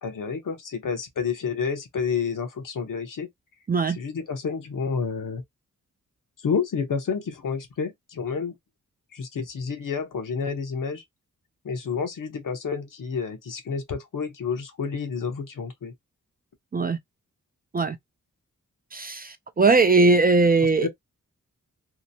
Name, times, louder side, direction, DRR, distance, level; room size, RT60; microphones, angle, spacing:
voice 1, 0.0-3.3 3.9-5.4 6.4-8.5 9.1-11.0 11.6-15.9 20.6-20.9, left 5 dB, 70° left, 0.9 m, -29 dB
voice 2, 18.9-20.9, right 3 dB, 30° right, 0.4 m, -20 dB
2.8 x 2.0 x 2.6 m
wide cardioid pair, 75°, 33 cm